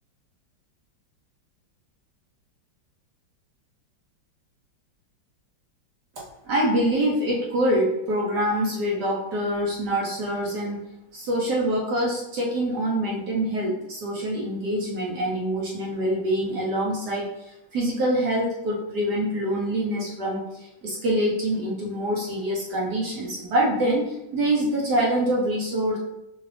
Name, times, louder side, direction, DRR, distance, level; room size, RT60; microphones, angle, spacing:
voice 1, 6.5-10.8 11.1-26.0, right 1 dB, 65° right, -4 dB, 1.2 m, -25 dB
4.9 x 2.4 x 3.3 m, 0.89 s
omnidirectional pair, 2.1 m